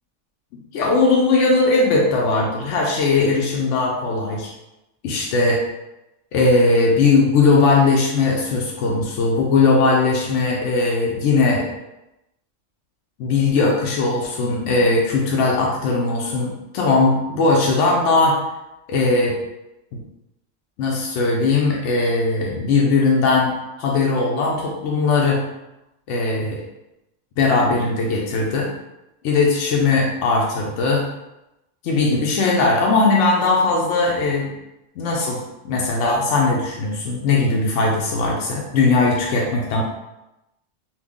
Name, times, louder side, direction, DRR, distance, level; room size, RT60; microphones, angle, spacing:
voice 1, 0.7-4.5 5.0-5.6 6.3-11.7 13.2-18.4 18.9-19.4 20.8-23.5 23.8-25.4 26.1-26.6 27.4-28.7 29.2-31.1 31.8-34.5 35.0-39.8, left 3 dB, 75° left, -2 dB, 0.9 m, -19 dB
3.0 x 2.2 x 3.5 m, 0.92 s
omnidirectional pair, 1.3 m